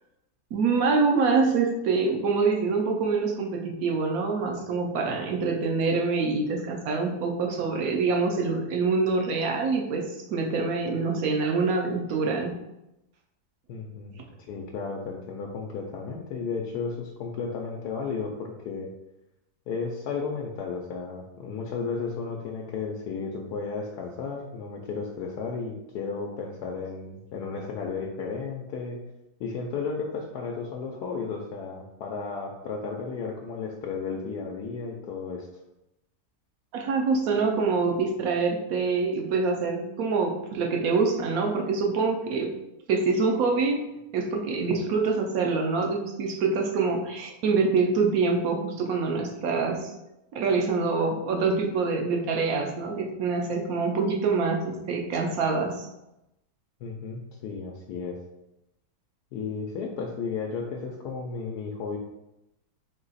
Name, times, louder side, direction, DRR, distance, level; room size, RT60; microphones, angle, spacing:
voice 1, 0.5-10.0 10.3-12.6 36.7-42.5 42.9-43.8 44.1-49.9 50.3-55.9, right 4 dB, 65° right, 2 dB, 1.0 m, -25 dB
voice 2, 13.7-14.1 14.5-18.9 19.7-29.0 29.4-35.5 56.8-58.2 59.3-62.0, left 5 dB, 75° left, 0 dB, 1.1 m, -33 dB
4.0 x 2.9 x 4.0 m, 0.90 s
omnidirectional pair, 1.8 m